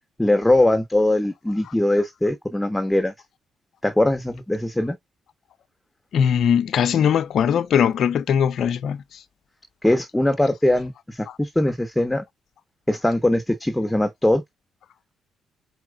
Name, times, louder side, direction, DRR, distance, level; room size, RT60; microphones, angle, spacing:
voice 1, 0.2-3.1 3.8-5.0 9.8-12.2 12.9-14.4, left 1 dB, 10° left, 1.1 m, -21 dB
voice 2, 6.1-9.0, left 8 dB, 65° left, 0.6 m, -20 dB
4.8 x 4.7 x 2.3 m
supercardioid pair, 65°, 0 cm